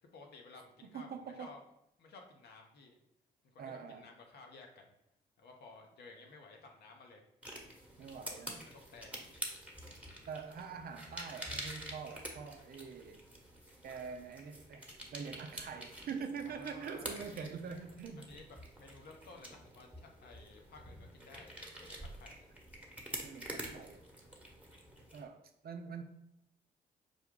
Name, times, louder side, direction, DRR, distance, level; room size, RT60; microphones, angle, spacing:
voice 1, 0.0-1.1 1.4-1.6 2.0-3.0 3.4-4.9 5.4-7.2 8.6-9.1 16.4-17.5 18.2-21.5 21.8-22.4, left 3 dB, 65° left, 2 dB, 0.8 m, -55 dB
voice 2, 0.8-1.5 3.6-4.1 8.0-8.6 10.3-13.2 13.8-14.9 15.1-18.3 23.2-24.1 25.1-26.0, right 6 dB, 55° right, 6 dB, 0.5 m, -44 dB
sound 1, 7.4-25.2, right 1 dB, 10° right, 1.1 m, -48 dB
5.1 x 2.3 x 3.7 m, 0.81 s
hypercardioid pair, 50°, 18 cm